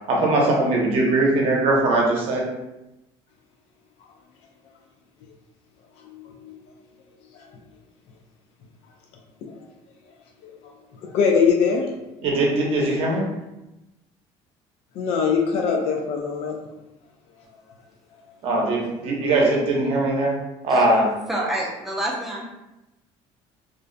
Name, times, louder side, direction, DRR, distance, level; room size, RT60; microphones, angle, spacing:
voice 1, 0.1-2.4 12.2-13.3 18.4-20.4 20.6-21.1, right 2 dB, 55° right, -2 dB, 0.7 m, -20 dB
voice 2, 6.1-6.6 10.4-10.5 11.0-11.9 15.0-16.5, left 6 dB, 60° left, 1 dB, 0.4 m, -22 dB
voice 3, 21.3-22.4, right 1 dB, ahead, -4 dB, 0.4 m, -27 dB
2.4 x 2.0 x 2.5 m, 0.96 s
cardioid pair, 155°, 12 cm